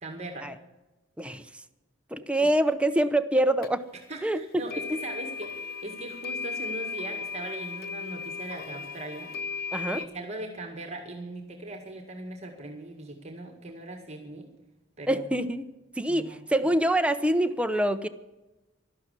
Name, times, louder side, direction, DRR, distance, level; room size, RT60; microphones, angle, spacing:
voice 1, 0.0-0.5 2.4-2.5 4.1-9.3 9.8-14.5 15.0-15.4 16.1-16.4, right 2 dB, 35° right, 3 dB, 1.9 m, -40 dB
voice 2, 2.1-3.8 4.2-4.4 4.9-5.0 9.7-10.0 15.1-15.7 16.0-18.1, right 1 dB, 5° right, 9 dB, 0.6 m, -25 dB
sound 1, 3.6-3.7 4.7-10.0, left 5 dB, 50° left, 0.9 m, -36 dB
12.5 x 12.0 x 8.2 m, 1.1 s
head